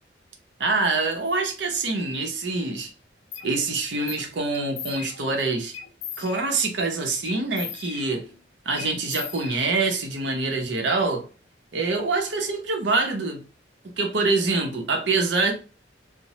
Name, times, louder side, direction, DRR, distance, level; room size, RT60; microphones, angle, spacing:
voice 1, 0.6-2.9 3.4-5.7 6.2-8.3 8.6-11.2 11.7-13.4 14.0-15.5, right 3 dB, 70° right, 0.7 m, -25 dB
sound 1, 3.3-3.5 4.1-4.3 4.5-5.4 5.7-6.7 7.2-8.4 8.8-10.0, left 8 dB, 80° left, 0.5 m, -38 dB
2.8 x 2.1 x 3.0 m
head